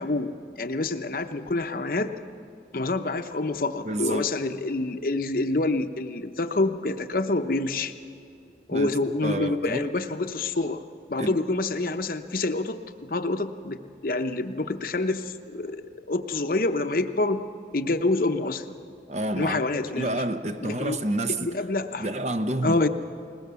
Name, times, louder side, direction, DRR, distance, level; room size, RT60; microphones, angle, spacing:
voice 1, 0.0-2.1 2.7-7.9 8.7-10.8 11.1-15.8 16.1-17.4 17.7-18.6 19.4-20.2 20.6-21.0 21.4-22.1 22.6-22.9, left 2 dB, 50° left, 8 dB, 0.8 m, -27 dB
voice 2, 3.8-4.3 8.7-8.9 9.2-9.9 11.2-11.4 19.1-19.6 20.0-21.5 22.0-22.8, right 1 dB, 40° right, 9 dB, 0.8 m, -29 dB
21.0 x 20.5 x 6.9 m, 2.4 s
head